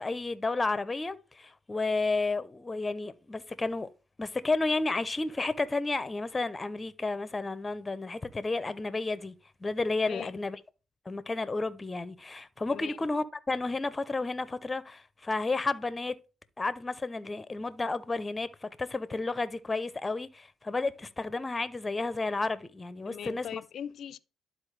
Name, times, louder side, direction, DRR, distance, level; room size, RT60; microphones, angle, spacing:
voice 1, 0.0-3.9 4.2-9.3 9.6-10.6 11.1-16.2 16.6-23.6, left 3 dB, 20° left, 0.6 m, -32 dB
voice 2, 10.0-10.4 12.7-13.0 23.0-24.2, left 9 dB, 65° left, 0.5 m, -40 dB
11.5 x 4.2 x 3.3 m
cardioid pair, 90°, 0 cm